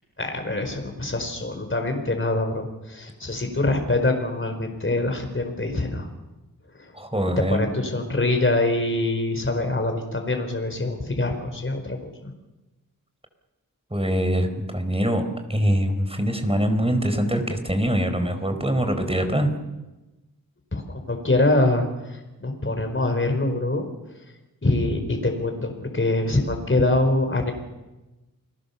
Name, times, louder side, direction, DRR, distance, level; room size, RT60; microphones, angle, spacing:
voice 1, 0.2-6.1 6.7-6.9 7.4-12.3 20.7-23.9 24.6-27.5, left 2 dB, 35° left, 5 dB, 4.5 m, -24 dB
voice 2, 6.9-7.7 13.9-19.5, equal, 15° right, 7 dB, 4.4 m, -23 dB
29.5 x 21.5 x 7.1 m, 1.1 s
wide cardioid pair, 70°, 35 cm